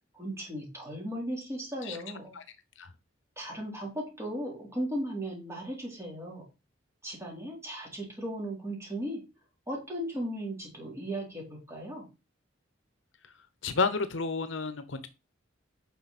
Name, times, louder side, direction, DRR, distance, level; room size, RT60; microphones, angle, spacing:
voice 1, 0.1-2.4 3.4-6.5 7.0-9.2 9.7-12.0, right 1 dB, 15° right, -1 dB, 3.7 m, -36 dB
voice 2, 13.6-15.1, left 4 dB, 70° left, 12 dB, 0.8 m, -30 dB
9.2 x 5.7 x 4.2 m, 0.28 s
head